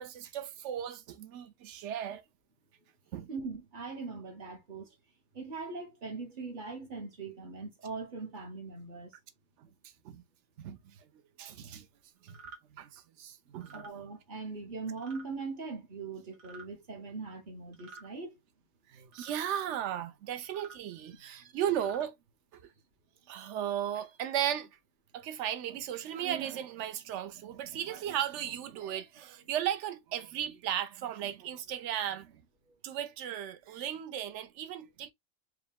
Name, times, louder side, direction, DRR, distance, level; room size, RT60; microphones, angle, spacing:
voice 1, 0.0-2.2 3.1-3.3 9.6-9.7 10.0-10.2 10.6-11.0 11.4-11.9 12.2-12.4 12.7-14.1 18.9-22.1 22.5-22.6 23.3-24.7 25.1-32.4 32.8-35.1, right 10 dB, 65° right, 0.9 m, -36 dB
voice 2, 3.3-4.9 5.3-9.1 13.7-18.4, right 4 dB, 40° right, 1.0 m, -41 dB
sound 1, 12.3-12.6 13.5-13.9 15.0-15.3 16.3-16.7 17.7-18.1 19.1-19.4 20.4-20.8 21.6-22.1, right 4 dB, 80° right, 1.7 m, -50 dB
4.8 x 2.2 x 3.5 m
omnidirectional pair, 1.4 m